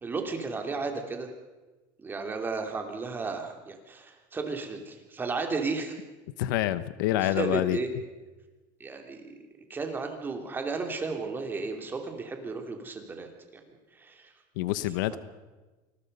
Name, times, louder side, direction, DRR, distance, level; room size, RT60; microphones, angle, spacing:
voice 1, 0.0-1.3 2.0-6.0 7.2-7.9 8.8-9.4 9.7-13.3 14.0-14.3 15.1-15.2, right 4 dB, 20° right, 4 dB, 3.0 m, -33 dB
voice 2, 6.4-7.8 14.6-15.2, left 14 dB, 90° left, 15 dB, 1.0 m, -27 dB
26.5 x 20.0 x 5.5 m, 1.2 s
cardioid pair, 135°, 11 cm